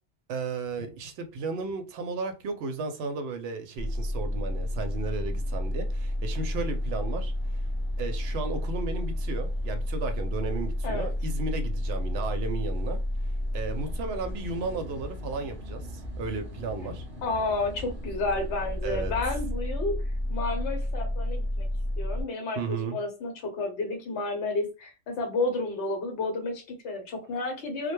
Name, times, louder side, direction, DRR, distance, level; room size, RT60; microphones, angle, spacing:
voice 1, 0.3-7.3 8.0-13.0 13.5-17.1 18.8-19.1 22.6-23.0, right 4 dB, 65° right, 0.7 m, -34 dB
sound 1, 3.8-22.2, left 1 dB, 30° right, 0.8 m, -31 dB
voice 2, 17.2-19.9 20.3-21.7 22.0-27.9, left 3 dB, 65° left, 1.0 m, -31 dB
2.1 x 2.1 x 3.0 m
omnidirectional pair, 1.3 m